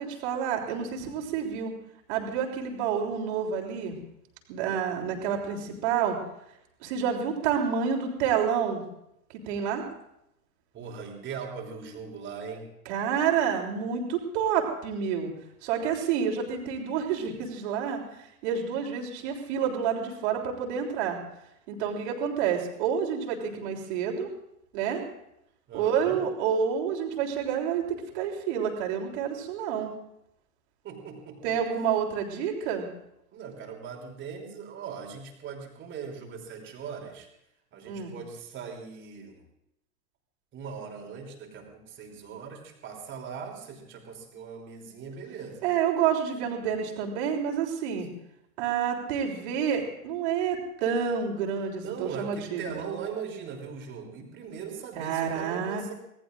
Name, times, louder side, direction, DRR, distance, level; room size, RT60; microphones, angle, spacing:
voice 1, 0.0-1.7 2.1-3.9 4.5-6.2 6.8-8.8 9.4-9.8 12.8-15.3 15.6-21.2 21.7-24.3 24.7-25.0 25.7-29.9 31.4-32.9 37.9-38.1 45.6-48.1 48.6-52.8 54.9-55.9, right 7 dB, 45° right, 1 dB, 3.4 m, -29 dB
voice 2, 10.7-12.7 25.7-26.2 30.8-31.5 33.3-37.3 37.7-39.4 40.5-45.7 51.8-55.9, right 6 dB, 25° right, 1 dB, 3.2 m, -40 dB
25.0 x 18.5 x 2.5 m, 0.81 s
figure-of-eight pair, 95°, 45 cm